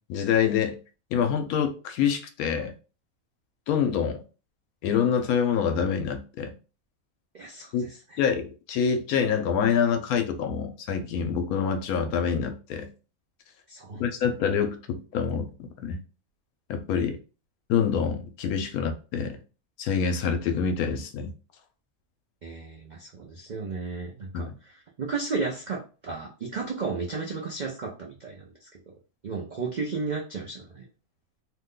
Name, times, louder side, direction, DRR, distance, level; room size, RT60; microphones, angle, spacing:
voice 1, 0.1-0.8 1.1-2.7 3.7-4.2 4.8-6.5 7.7-7.9 8.2-12.9 14.0-15.5 15.8-16.0 16.7-17.2 17.7-19.4 19.8-21.3 24.3-24.5, left 7 dB, 80° left, 1.1 m, -26 dB
voice 2, 7.3-8.2 13.7-14.2 22.4-28.9 29.2-30.8, right 4 dB, 75° right, 0.4 m, -34 dB
2.8 x 2.2 x 3.6 m
omnidirectional pair, 1.5 m